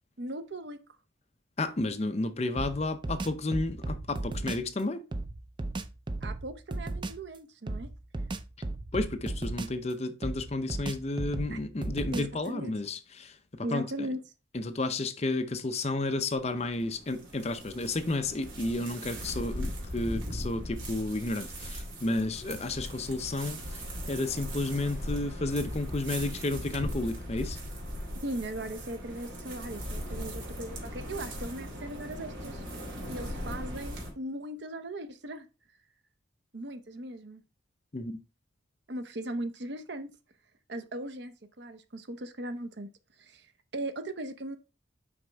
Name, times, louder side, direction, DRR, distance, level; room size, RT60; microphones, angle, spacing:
voice 1, 0.2-0.8 6.2-7.9 11.5-11.6 12.1-12.7 13.6-14.2 28.2-32.6 33.1-35.5 36.5-37.4 38.9-40.1 40.7-42.9 43.2-43.5 43.7-44.6, right 1 dB, 60° right, 0.8 m, -38 dB
voice 2, 1.6-5.0 8.9-14.1 14.5-23.8 24.1-27.6 37.9-38.2, left 2 dB, 35° left, 0.6 m, -32 dB
sound 1, 2.6-4.7 5.1-7.3 7.7-9.9 10.2-12.5, right 2 dB, 25° right, 0.4 m, -36 dB
sound 2, 16.4-34.1, equal, 80° right, 2.7 m, -39 dB
6.0 x 5.1 x 3.4 m
head